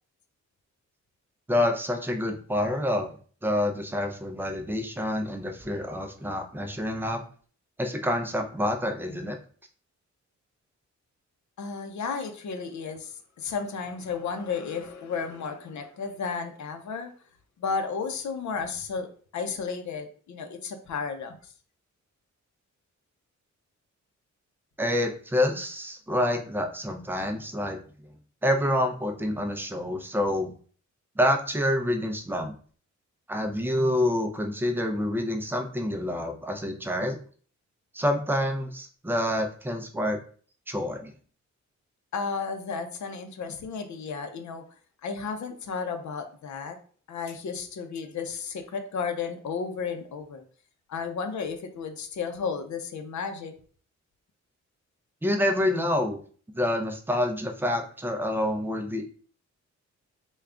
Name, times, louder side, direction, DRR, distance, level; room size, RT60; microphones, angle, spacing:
voice 1, 1.5-3.2 3.4-7.2 7.8-9.4 24.8-27.8 28.4-30.5 31.2-32.5 33.3-37.2 37.9-40.2 40.7-41.1 55.2-56.2 56.5-59.0, left 1 dB, 5° right, 5 dB, 0.4 m, -27 dB
voice 2, 11.6-17.1 17.6-21.4 42.1-44.6 45.0-46.8 47.1-50.4 50.9-53.5, left 5 dB, 70° left, 6 dB, 0.6 m, -33 dB
3.4 x 2.3 x 3.6 m, 0.43 s
wide cardioid pair, 150°, 30 cm